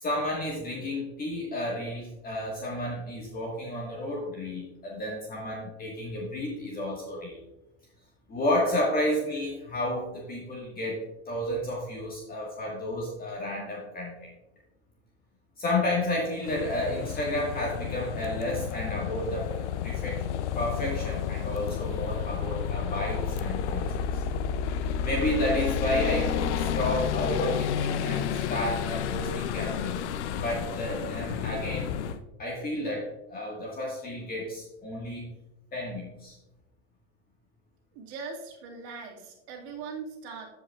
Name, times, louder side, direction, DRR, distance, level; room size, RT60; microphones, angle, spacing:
voice 1, 0.0-7.4 8.3-14.3 15.6-20.2 20.5-23.9 24.1-24.2 25.0-30.1 30.4-31.9 32.4-35.3 35.7-36.3, left 1 dB, 25° left, -3 dB, 1.7 m, -31 dB
sound 1, 16.4-32.2, left 8 dB, 85° left, 0.6 m, -31 dB
voice 2, 37.9-40.5, right 5 dB, 65° right, 0 dB, 2.1 m, -40 dB
14.0 x 5.3 x 2.4 m, 0.98 s
hypercardioid pair, 110°, 34 cm